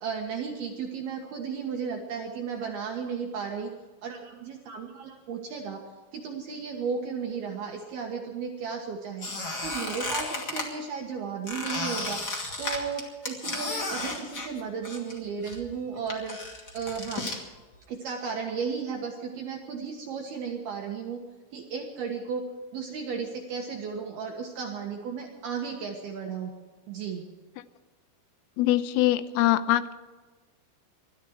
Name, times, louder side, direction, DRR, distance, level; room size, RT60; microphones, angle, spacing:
voice 1, 0.0-3.7 4.0-5.8 6.1-9.3 9.6-16.4 16.7-17.2 17.9-21.2 21.5-22.4 22.7-26.5 26.9-27.2, right 6 dB, 65° right, 1 dB, 2.9 m, -34 dB
Squeak, 9.2-10.7 11.5-15.2 15.4-17.4, left 2 dB, 35° left, 1.7 m, -33 dB
voice 2, 28.6-29.9, left 14 dB, 85° left, 12 dB, 3.4 m, -23 dB
22.0 x 13.5 x 4.6 m, 1.3 s
omnidirectional pair, 5.8 m